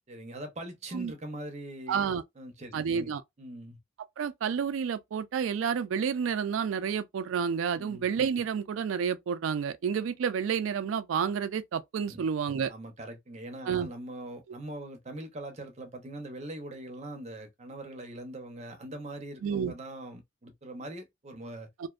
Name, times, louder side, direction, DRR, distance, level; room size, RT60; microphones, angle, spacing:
voice 1, 0.1-3.1 3.4-3.8 7.8-8.1 12.1-12.2 12.7-21.7, right 1 dB, 35° right, 0.6 m, -42 dB
voice 2, 1.9-2.2 2.7-3.2 4.2-12.7 13.7-13.9 19.4-19.7 21.8-21.9, right 7 dB, 90° right, 0.3 m, -30 dB
2.5 x 2.1 x 2.3 m
head